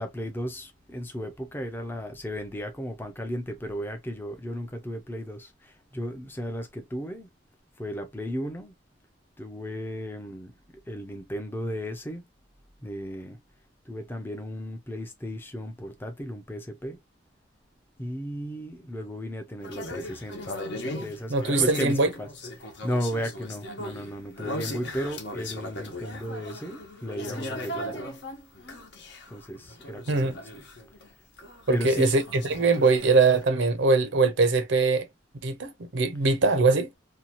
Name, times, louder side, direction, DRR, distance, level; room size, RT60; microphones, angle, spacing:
voice 1, 0.0-7.3 7.8-8.7 9.4-10.5 10.9-12.2 12.8-13.4 13.9-17.0 18.0-28.1 29.3-30.7 31.7-32.2, equal, 10° left, 0.5 m, -35 dB
sound 1, 19.6-31.1 31.4-33.4, left 1 dB, 65° left, 0.9 m, -38 dB
voice 2, 21.3-22.1 30.1-30.4 31.7-35.1 35.4-36.9, right 3 dB, 70° right, 0.6 m, -22 dB
2.7 x 2.3 x 2.8 m
head